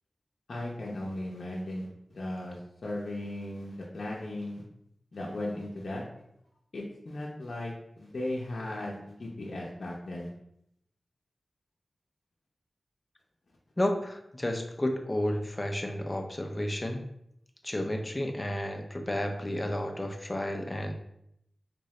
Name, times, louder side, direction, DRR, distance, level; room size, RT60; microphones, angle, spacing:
voice 1, 0.5-4.6 5.1-6.0 6.7-10.3, left 1 dB, 70° left, -4 dB, 0.7 m, -37 dB
voice 2, 13.8-17.1 17.6-20.9, left 1 dB, 25° left, 3 dB, 0.5 m, -32 dB
3.7 x 2.6 x 3.1 m, 0.76 s
wide cardioid pair, 60°, 0 cm